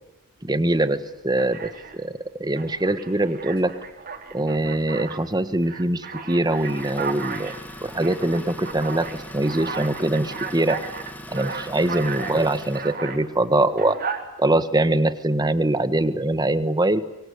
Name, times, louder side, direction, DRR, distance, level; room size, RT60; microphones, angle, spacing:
voice 1, 0.4-1.0 1.2-2.1 2.4-3.7 4.3-7.5 7.8-9.0 9.3-10.8 11.3-14.0 14.4-17.0, right 1 dB, 20° right, 12 dB, 1.4 m, -23 dB
Alarm, 0.7-0.9 1.4-2.0 2.6-5.2 5.6-13.2 13.7-14.2, right 5 dB, 40° right, 4.3 m, -35 dB
Idling, 6.5-13.0, left 1 dB, 10° left, 1.9 m, -40 dB
25.0 x 23.5 x 9.6 m, 0.99 s
head